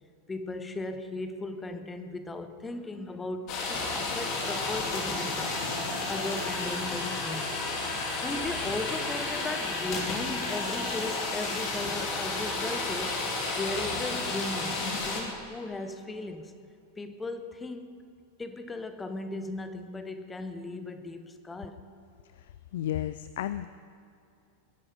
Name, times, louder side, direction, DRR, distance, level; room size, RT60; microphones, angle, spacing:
voice 1, 0.3-5.6 6.1-16.5 17.0-17.9 18.4-21.8, left 2 dB, 10° left, 9 dB, 1.0 m, -37 dB
sound 1, 3.5-15.2, left 3 dB, 40° left, 2.8 m, -32 dB
voice 2, 22.7-23.7, left 12 dB, 55° left, 14 dB, 0.4 m, -32 dB
21.5 x 11.0 x 5.2 m, 2.5 s
figure-of-eight pair, 90°, 0 cm